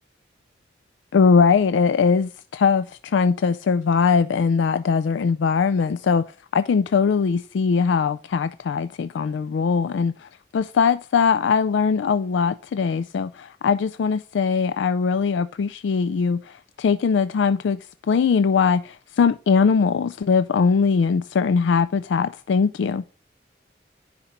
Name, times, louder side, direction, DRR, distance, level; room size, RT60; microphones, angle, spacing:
voice 1, 1.1-6.2 6.5-23.0, left 5 dB, 85° left, 0.4 m, -21 dB
10.0 x 4.3 x 3.7 m
head